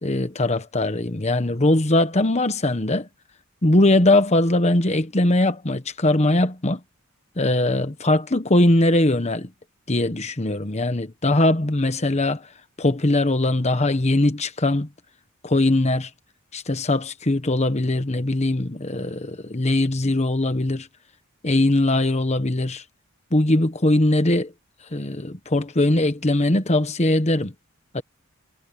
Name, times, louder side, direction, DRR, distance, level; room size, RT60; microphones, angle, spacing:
voice 1, 0.0-3.1 3.6-6.8 7.4-9.5 9.9-12.5 12.8-14.9 15.4-16.1 16.5-20.9 21.4-22.8 23.3-24.5 24.9-27.5 27.9-28.0, left 1 dB, 30° left, 1.2 m, -21 dB
head